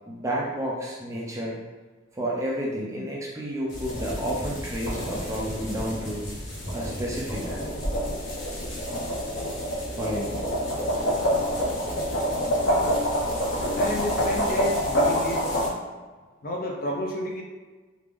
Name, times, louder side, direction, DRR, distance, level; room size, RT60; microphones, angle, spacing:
voice 1, 0.1-1.6 2.1-6.3 6.7-7.6 10.0-10.4, equal, 15° right, -4 dB, 0.5 m, -31 dB
sound 1, 3.7-15.7, equal, 60° left, 0.9 m, -27 dB
voice 2, 13.7-15.5 16.4-17.4, left 1 dB, 45° left, -1 dB, 0.5 m, -31 dB
3.2 x 2.5 x 3.4 m, 1.3 s
head